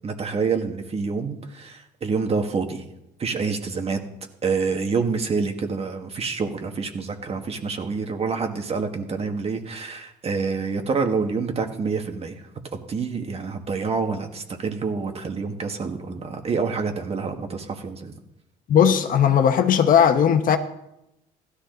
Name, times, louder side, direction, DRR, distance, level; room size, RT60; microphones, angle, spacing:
voice 1, 0.0-2.8 3.2-4.0 4.4-12.4 12.7-18.1, right 5 dB, 35° right, 1.9 m, -27 dB
voice 2, 18.7-20.6, left 8 dB, 55° left, 1.2 m, -17 dB
16.0 x 13.0 x 4.0 m
cardioid pair, 110°, 17 cm